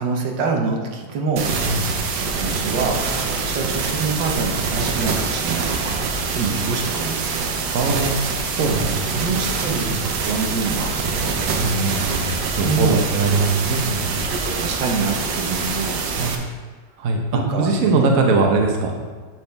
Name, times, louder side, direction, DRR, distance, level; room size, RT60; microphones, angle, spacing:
voice 1, 0.0-1.7 2.4-7.5 9.2-11.4 12.6-13.1 14.1-16.0 17.3-18.1, right 4 dB, 85° right, 1 dB, 1.7 m, -26 dB
sound 1, 1.4-16.4, right 4 dB, 70° right, 1.4 m, -25 dB
voice 2, 1.6-1.9 7.7-8.3 8.6-8.8 9.1-9.2 9.8-10.0 11.5-14.2 16.2-16.3 17.0-17.2 17.6-19.0, right 3 dB, 55° right, 2 dB, 1.2 m, -21 dB
8.6 x 6.2 x 3.4 m, 1.5 s
omnidirectional pair, 1.9 m